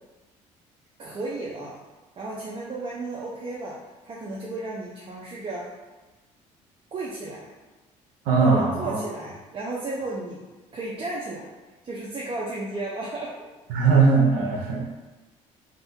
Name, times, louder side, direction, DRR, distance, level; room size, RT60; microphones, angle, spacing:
voice 1, 1.0-1.8 2.2-3.8 4.0-5.7 6.9-7.6 8.4-10.4 10.7-11.5 11.8-13.5, right 2 dB, 40° right, -4 dB, 0.6 m, -33 dB
voice 2, 8.3-9.0 13.7-14.9, right 4 dB, 80° right, -1 dB, 0.8 m, -20 dB
2.6 x 2.5 x 3.5 m, 1.2 s
supercardioid pair, 85°, 14 cm